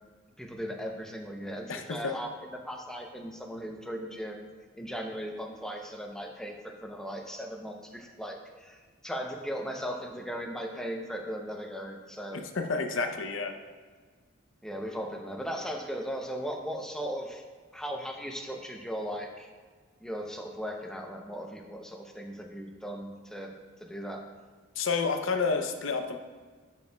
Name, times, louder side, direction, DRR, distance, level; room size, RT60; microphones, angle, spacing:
voice 1, 0.4-12.4 13.0-13.1 14.6-17.4 17.7-19.5 20.0-23.5 23.8-24.2, equal, 5° left, 2 dB, 0.6 m, -38 dB
voice 2, 1.7-2.1 12.3-13.5 24.8-26.2, left 4 dB, 65° left, 6 dB, 0.6 m, -30 dB
11.5 x 5.2 x 2.3 m, 1.5 s
head